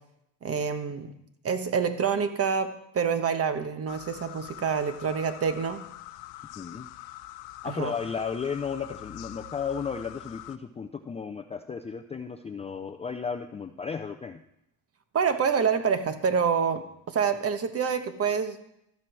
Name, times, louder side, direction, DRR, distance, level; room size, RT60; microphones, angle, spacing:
voice 1, 0.4-1.1 1.4-5.8 7.6-7.9 15.1-18.6, right 6 dB, 30° right, 9 dB, 1.2 m, -27 dB
sound 1, 3.9-10.6, left 16 dB, 75° left, 0.9 m, -44 dB
voice 2, 6.6-6.9 7.6-14.4, left 6 dB, 15° left, 6 dB, 0.4 m, -34 dB
13.0 x 7.6 x 6.2 m, 0.81 s
cardioid pair, 115°, 45 cm